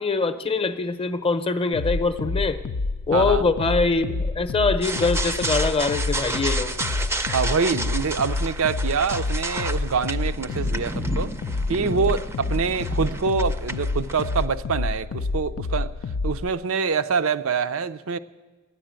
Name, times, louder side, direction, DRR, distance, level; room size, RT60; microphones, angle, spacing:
voice 1, 0.0-2.6 3.1-6.7, left 3 dB, 25° left, 9 dB, 0.7 m, -23 dB
sound 1, 1.7-16.5, left 3 dB, 70° left, 0.4 m, -28 dB
voice 2, 3.1-3.5 7.3-11.3 11.7-15.9 16.2-18.2, right 5 dB, 70° right, 13 dB, 0.5 m, -25 dB
sound 2, 4.8-14.5, right 2 dB, 10° right, 0.5 m, -32 dB
13.0 x 10.0 x 8.9 m, 1.3 s
head